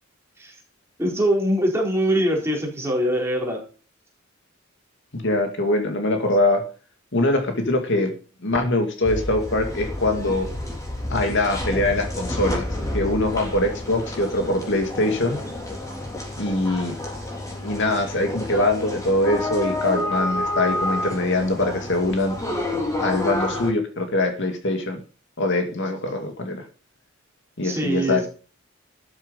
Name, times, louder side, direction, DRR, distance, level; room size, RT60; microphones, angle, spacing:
voice 1, 1.0-3.6 27.6-28.3, equal, 15° right, -1 dB, 4.1 m, -23 dB
voice 2, 5.1-6.6 7.1-8.1 8.4-10.5 11.1-12.7 12.9-15.4 16.4-17.0 17.5-22.4 23.0-25.0 25.4-26.7 27.6-28.3, left 2 dB, 60° left, 5 dB, 2.3 m, -23 dB
sound 1, 9.0-23.7, left 1 dB, 15° left, 3.9 m, -29 dB
12.5 x 7.8 x 5.4 m, 0.38 s
head